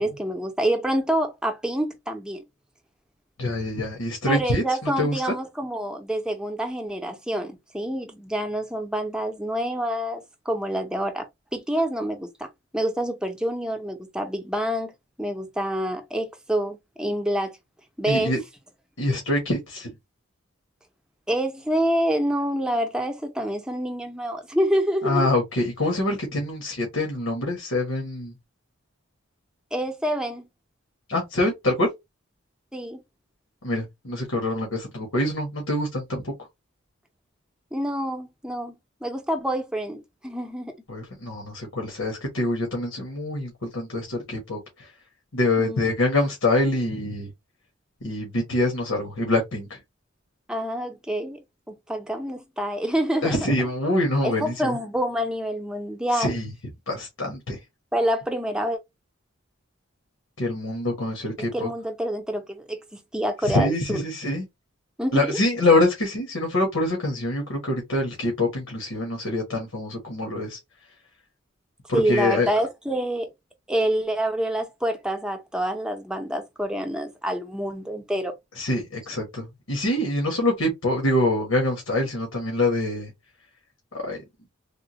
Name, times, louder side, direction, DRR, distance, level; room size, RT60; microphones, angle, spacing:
voice 1, 0.0-2.4 4.3-12.5 12.7-14.9 15.2-17.6 18.0-18.3 21.3-25.3 29.7-30.5 32.7-33.0 37.7-38.7 39.0-40.8 45.6-45.9 50.5-51.4 51.7-53.7 54.2-56.4 57.9-58.8 61.4-62.8 63.1-64.0 65.0-65.4 71.9-73.3 73.7-78.3, right 1 dB, 5° right, 0.6 m, -27 dB
voice 2, 3.4-5.3 18.1-18.4 19.0-19.9 25.0-28.3 31.1-31.9 33.6-36.3 40.9-44.9 45.3-47.3 48.0-49.8 53.2-54.8 56.1-56.5 56.9-57.6 60.4-61.7 63.4-64.4 65.1-70.6 71.9-72.5 78.5-83.1 83.9-84.2, left 2 dB, 90° left, 1.4 m, -25 dB
3.6 x 2.3 x 2.8 m
head